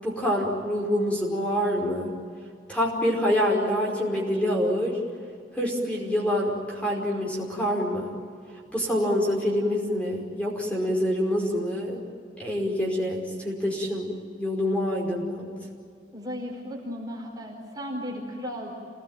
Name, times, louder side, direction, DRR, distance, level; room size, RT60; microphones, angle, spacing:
voice 1, 0.0-2.1 2.7-5.0 5.5-8.1 8.7-12.0 12.4-15.5, equal, 5° left, -2 dB, 5.1 m, -26 dB
voice 2, 16.1-18.7, equal, 20° right, -1 dB, 4.7 m, -35 dB
28.5 x 19.0 x 9.2 m, 2.4 s
head